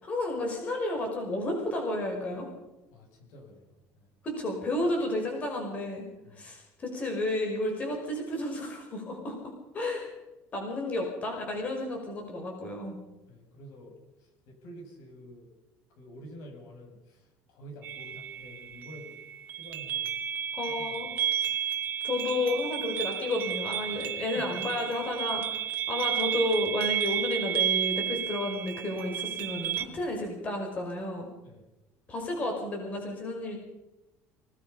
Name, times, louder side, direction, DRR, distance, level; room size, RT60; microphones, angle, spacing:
voice 1, 0.0-2.5 4.2-6.0 6.4-10.1 10.5-13.0 20.6-21.1 22.0-25.6 25.9-31.3 32.1-33.6, left 1 dB, 25° left, 2 dB, 5.4 m, -32 dB
voice 2, 2.9-3.7 4.0-4.1 6.2-6.4 13.3-15.5 15.9-19.2 19.5-20.1 20.8-21.8 23.9-24.6 31.4-31.6, equal, 70° left, 2 dB, 7.6 m, -49 dB
sound 1, 17.8-29.8, right 10 dB, 40° right, 2.1 m, -32 dB
26.0 x 19.5 x 5.7 m, 0.99 s
cardioid pair, 155°, 5 cm